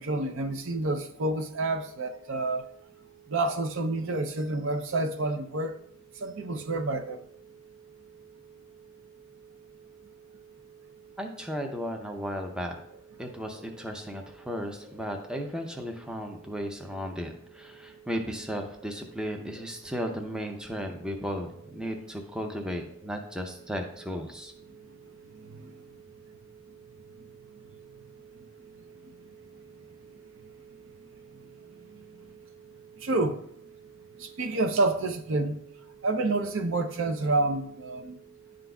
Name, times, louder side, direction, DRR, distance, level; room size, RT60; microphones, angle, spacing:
voice 1, 0.0-2.7 3.3-5.7 6.2-7.2 25.3-25.7 33.0-33.4 34.2-35.6 36.0-38.2, right 2 dB, 60° right, 0.6 m, -28 dB
voice 2, 11.2-12.8 13.2-24.5, equal, 5° right, 0.5 m, -35 dB
10.5 x 3.8 x 2.3 m
head